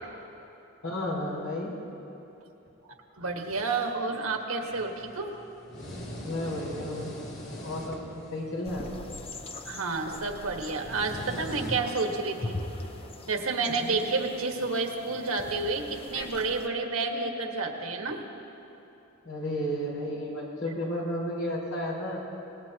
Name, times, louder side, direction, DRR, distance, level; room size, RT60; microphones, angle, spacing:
voice 1, 0.8-1.7 6.2-7.1 7.6-9.1 13.8-14.0 19.2-22.2, left 1 dB, 80° left, -4 dB, 4.8 m, -33 dB
voice 2, 3.2-5.3 9.7-12.6 13.3-18.2, right 3 dB, 90° right, 2 dB, 1.6 m, -30 dB
sound 1, 4.7-12.2, equal, 55° left, 2.8 m, -42 dB
sound 2, 8.6-16.7, left 2 dB, 30° left, 0.8 m, -41 dB
25.5 x 19.5 x 2.9 m, 2.9 s
head